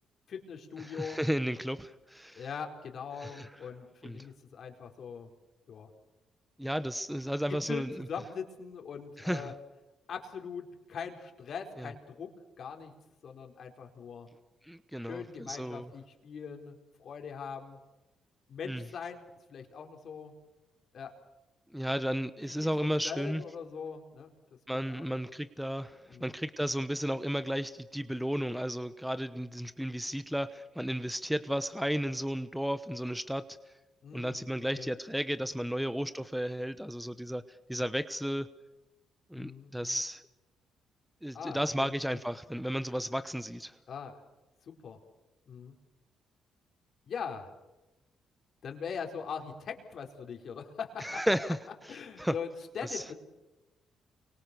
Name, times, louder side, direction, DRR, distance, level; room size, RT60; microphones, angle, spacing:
voice 1, 0.3-1.2 2.4-5.3 5.7-5.9 7.5-9.5 10.1-12.9 13.2-14.3 15.0-17.8 18.5-19.2 19.5-20.3 20.9-21.1 22.6-24.3 24.7-25.2 26.1-26.2 34.0-34.5 34.7-34.9 39.3-40.0 41.3-42.2 43.9-44.2 44.6-45.0 45.5-45.7 47.0-47.5 48.6-51.2 51.9-53.1, left 6 dB, 60° left, 3 dB, 4.4 m, -41 dB
voice 2, 0.8-2.4 3.2-3.5 4.0-4.3 6.6-8.1 9.2-9.5 11.8-11.9 14.6-15.9 18.6-18.8 21.7-23.4 24.7-33.4 34.1-37.4 37.7-38.5 39.3-40.2 41.2-43.7 51.0-51.6 52.2-52.3 52.8-53.0, equal, ahead, 12 dB, 1.0 m, -33 dB
29.0 x 24.5 x 7.0 m, 1.1 s
cardioid pair, 90°, 0 cm